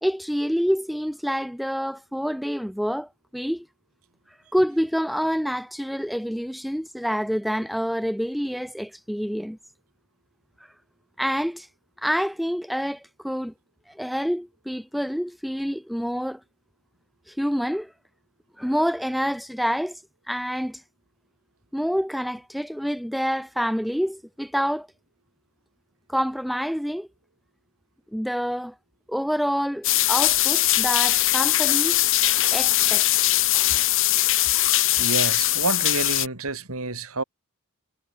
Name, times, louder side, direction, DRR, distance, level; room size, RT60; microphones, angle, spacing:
voice 1, 0.0-3.7 4.5-9.6 11.2-11.7 12.0-13.5 13.9-16.4 17.3-17.9 18.6-20.0 20.3-20.8 21.7-24.9 26.1-27.1 28.1-28.7 29.1-32.0 32.5-33.3, equal, ahead, 0.8 m, -27 dB
sound 1, 29.8-36.3, left 15 dB, 65° left, 2.6 m, -21 dB
voice 2, 35.0-37.2, right 3 dB, 75° right, 3.9 m, -28 dB
head